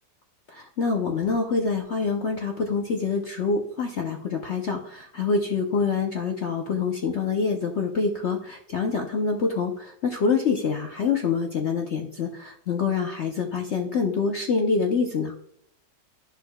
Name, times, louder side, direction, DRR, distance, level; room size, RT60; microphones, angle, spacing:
voice 1, 0.5-15.3, left 5 dB, 60° left, 2 dB, 0.7 m, -26 dB
10.5 x 6.6 x 2.2 m, 0.67 s
omnidirectional pair, 1.9 m